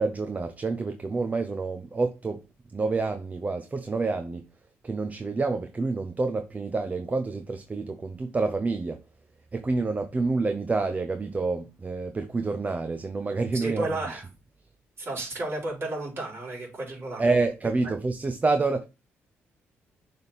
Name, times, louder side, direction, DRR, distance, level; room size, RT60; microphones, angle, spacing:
voice 1, 0.0-2.4 2.7-4.5 4.8-9.0 9.5-14.2 17.2-18.8, right 3 dB, 30° right, 0.7 m, -28 dB
voice 2, 13.6-14.2 15.0-17.3, right 2 dB, 45° right, 4.0 m, -32 dB
6.6 x 3.6 x 4.2 m
supercardioid pair, 65°, 5 cm